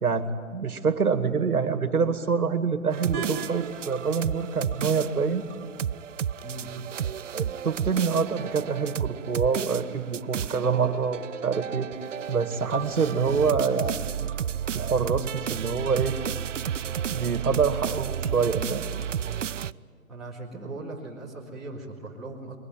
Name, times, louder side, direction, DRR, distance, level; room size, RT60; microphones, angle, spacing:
voice 1, 0.0-5.4 7.3-11.9 12.3-14.0 14.7-16.2 17.1-18.9, right 5 dB, 90° right, 9 dB, 2.4 m, -26 dB
sound 1, 2.9-19.7, right 9 dB, 60° right, 0.5 m, -32 dB
sound 2, 3.1-9.1, right 5 dB, 30° right, 3.6 m, -43 dB
voice 2, 20.1-22.5, right 2 dB, ahead, -10 dB, 2.0 m, -39 dB
22.5 x 20.0 x 9.3 m, 2.1 s
hypercardioid pair, 170°, 43 cm